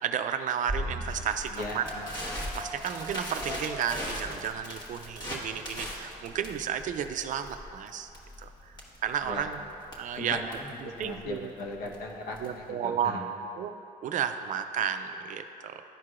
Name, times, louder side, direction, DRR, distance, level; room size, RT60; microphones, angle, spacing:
voice 1, 0.0-1.8 2.5-8.1 8.4-8.7 9.0-9.6 10.0-10.4 10.8-11.5 12.4-13.2 13.6-13.7 14.0-15.8, right 8 dB, 50° right, 8 dB, 0.4 m, -32 dB
Crackle, 0.7-12.7, equal, 25° left, 1.3 m, -39 dB
voice 2, 1.5-2.1 9.2-9.5 10.1-13.2, left 2 dB, 60° left, 1 dB, 1.0 m, -38 dB
sound 1, 1.6-7.5, equal, ahead, 1.4 m, -46 dB
12.0 x 4.6 x 2.4 m, 2.8 s
cardioid pair, 110°, 17 cm